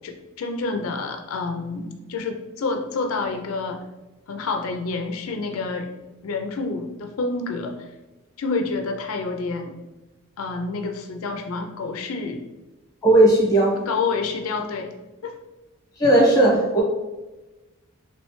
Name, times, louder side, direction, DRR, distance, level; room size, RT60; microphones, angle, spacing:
voice 1, 0.0-3.8 4.3-6.0 6.2-7.9 8.4-9.7 10.4-12.4 13.8-14.9 15.2-15.4, left 4 dB, 85° left, 4 dB, 0.4 m, -28 dB
voice 2, 13.0-13.8 16.0-16.8, right 1 dB, 15° left, -4 dB, 1.1 m, -16 dB
3.1 x 3.0 x 3.0 m, 1.1 s
head